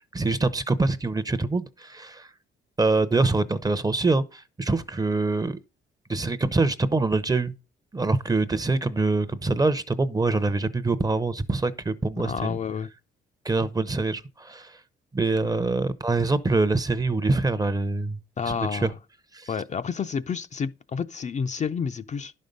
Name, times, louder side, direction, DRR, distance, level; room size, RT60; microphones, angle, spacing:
voice 1, 0.1-2.3 2.8-5.6 6.1-7.5 7.9-12.6 13.4-14.8 15.1-18.2 18.5-18.9 19.3-19.5, right 3 dB, 20° right, 0.8 m, -24 dB
voice 2, 12.2-12.9 18.4-19.0 19.5-22.3, left 6 dB, 35° left, 0.5 m, -30 dB
11.0 x 5.4 x 5.3 m
cardioid pair, 90°, 20 cm